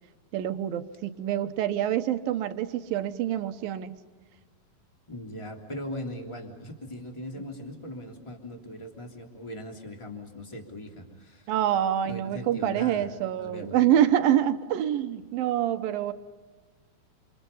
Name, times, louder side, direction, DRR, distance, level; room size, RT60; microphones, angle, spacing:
voice 1, 0.3-3.9 11.5-16.1, right 11 dB, 75° right, 9 dB, 2.8 m, -26 dB
voice 2, 5.1-11.5 12.0-13.1 13.4-13.8, left 1 dB, 10° left, 2 dB, 2.9 m, -39 dB
28.5 x 28.0 x 5.5 m, 1.3 s
omnidirectional pair, 4.2 m